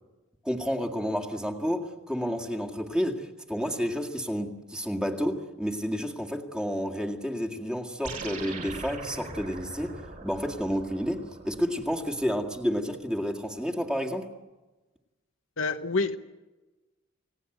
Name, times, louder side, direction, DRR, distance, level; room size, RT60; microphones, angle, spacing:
voice 1, 0.4-14.3, equal, 5° right, 2.0 m, -30 dB
sound 1, 8.0-12.7, right 3 dB, 40° right, 5.4 m, -42 dB
voice 2, 15.6-16.2, left 3 dB, 70° left, 1.1 m, -27 dB
30.0 x 18.0 x 8.1 m
head